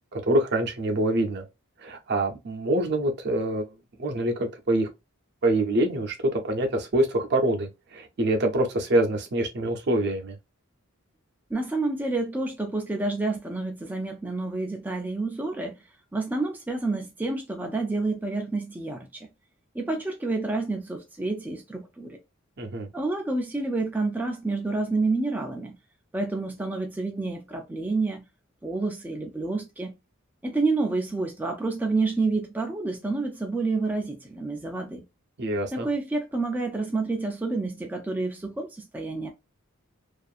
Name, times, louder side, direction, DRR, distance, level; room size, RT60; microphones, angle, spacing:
voice 1, 0.1-1.4 1.8-3.7 4.0-4.9 5.4-10.4 22.6-22.9 35.4-35.9, right 1 dB, 55° right, 0.6 m, -25 dB
voice 2, 11.5-15.8 16.1-19.3 19.7-22.2 22.9-25.8 26.1-28.3 28.6-30.0 30.4-35.0 35.7-39.3, right 3 dB, 10° right, 0.3 m, -29 dB
2.5 x 2.4 x 2.4 m
head